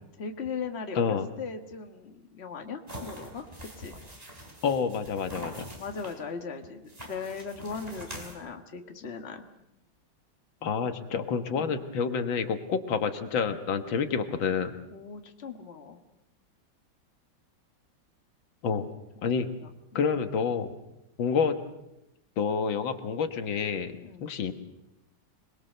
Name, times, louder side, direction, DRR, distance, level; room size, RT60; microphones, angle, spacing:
voice 1, 0.2-3.4 3.8-4.0 5.8-9.4 11.5-11.8 14.9-16.0 19.3-20.0 24.0-24.2, left 5 dB, 35° left, 5 dB, 1.7 m, -39 dB
sound 1, 2.9-6.2 6.9-8.3, right 1 dB, 20° right, 4.5 m, -44 dB
voice 2, 4.6-5.7 10.6-14.8 18.6-18.9 19.2-19.5 20.0-20.8 21.2-21.6 22.4-23.9 24.2-24.5, left 6 dB, 85° left, 8 dB, 2.1 m, -28 dB
26.0 x 21.0 x 6.7 m, 0.90 s
omnidirectional pair, 2.1 m